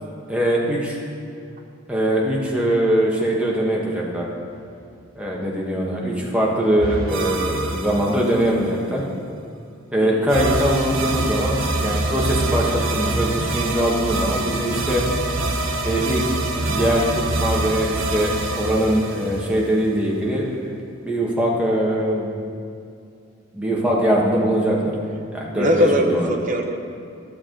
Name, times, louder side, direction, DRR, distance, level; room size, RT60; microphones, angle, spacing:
voice 1, 0.3-1.0 1.9-4.3 5.2-9.0 9.9-15.0 15.8-16.2 16.6-20.7 21.0-22.2 23.5-24.9 25.3-26.3, right 1 dB, 5° right, -4 dB, 1.2 m, -22 dB
sound 1, 6.8-8.7 10.3-20.0, right 2 dB, 80° right, 0.8 m, -25 dB
voice 2, 10.0-10.3 25.5-26.8, equal, 40° right, 3 dB, 0.8 m, -20 dB
12.5 x 7.0 x 3.8 m, 2.5 s
head